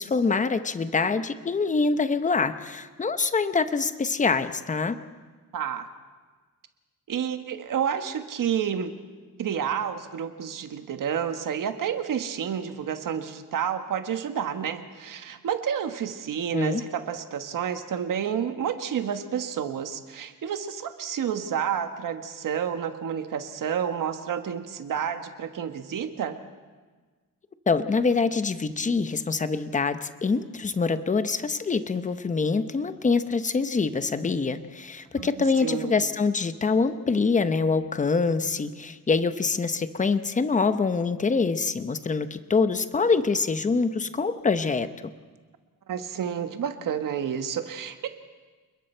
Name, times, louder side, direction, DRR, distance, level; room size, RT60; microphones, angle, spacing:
voice 1, 0.0-5.0 16.5-16.8 27.7-44.9, left 4 dB, 20° left, 10 dB, 0.8 m, -25 dB
voice 2, 5.5-5.9 7.1-8.9 9.4-26.4 35.2-35.3 35.6-35.9 45.9-48.1, right 8 dB, 65° right, 7 dB, 1.5 m, -30 dB
29.0 x 21.0 x 4.5 m, 1.4 s
wide cardioid pair, 145°, 35 cm